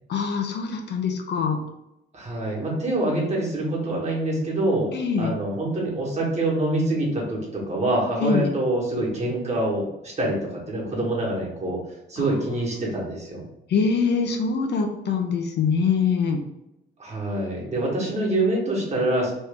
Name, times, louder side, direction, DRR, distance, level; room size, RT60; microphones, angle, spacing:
voice 1, 0.1-1.6 4.9-5.3 8.2-8.5 12.2-12.3 13.7-16.4, left 5 dB, 60° left, 3 dB, 0.6 m, -24 dB
voice 2, 2.1-4.9 5.2-11.8 12.1-13.4 17.0-19.3, right 1 dB, 35° right, -3 dB, 1.4 m, -25 dB
3.1 x 2.7 x 3.4 m, 0.87 s
cardioid pair, 90°, 20 cm